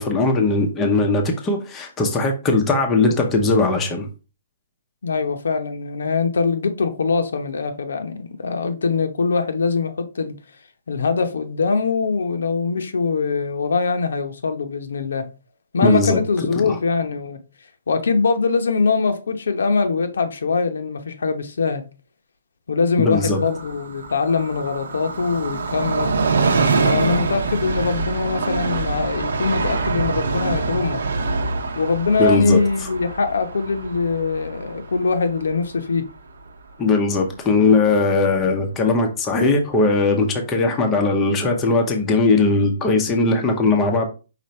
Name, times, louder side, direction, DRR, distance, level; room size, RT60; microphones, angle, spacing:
voice 1, 0.0-4.1 15.8-16.2 16.6-16.8 23.0-23.4 32.2-32.9 36.8-44.1, left 3 dB, 10° left, 0.6 m, -19 dB
voice 2, 5.0-10.3 10.9-15.3 15.7-17.4 17.9-21.8 22.7-26.2 26.8-31.0 31.7-36.1, left 4 dB, 80° left, 0.8 m, -22 dB
Train, 23.2-36.5 36.8-36.9, right 4 dB, 75° right, 0.8 m, -25 dB
5.1 x 2.5 x 4.3 m
hypercardioid pair, 175°, 0 cm